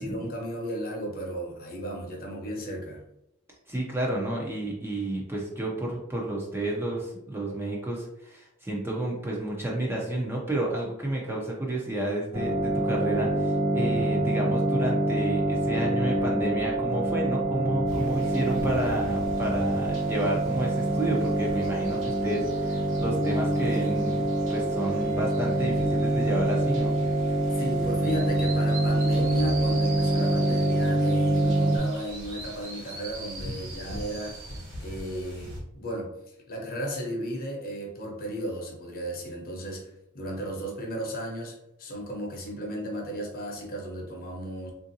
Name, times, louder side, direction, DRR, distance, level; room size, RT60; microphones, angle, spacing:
voice 1, 0.0-3.0 27.6-34.4 34.8-39.9 40.1-44.7, equal, 45° left, 0 dB, 0.8 m, -35 dB
voice 2, 3.7-27.1, right 1 dB, 10° right, -2 dB, 0.5 m, -31 dB
sound 1, 12.3-31.8, right 1 dB, 40° right, 0.8 m, -25 dB
sound 2, 17.9-35.6, right 1 dB, 65° right, 1.2 m, -41 dB
3.5 x 2.6 x 2.7 m, 0.80 s
head